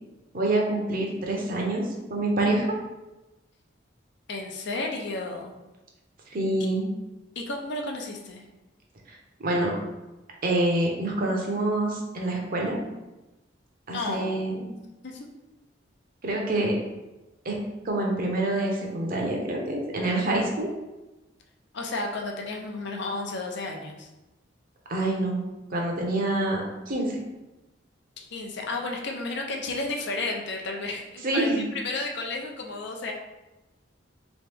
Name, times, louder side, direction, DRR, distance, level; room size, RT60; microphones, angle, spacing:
voice 1, 0.3-2.7 6.3-6.9 9.1-9.2 9.4-9.7 10.4-12.8 13.9-14.7 16.2-16.7 17.4-17.6 17.8-20.7 24.9-25.4 25.7-27.2 31.2-31.6, right 2 dB, 50° right, -1 dB, 0.8 m, -26 dB
voice 2, 4.3-5.5 7.4-8.4 13.9-14.6 15.0-15.3 21.7-24.1 28.2-33.1, left 2 dB, 65° left, 1 dB, 0.6 m, -32 dB
3.4 x 3.1 x 3.4 m, 1.0 s
head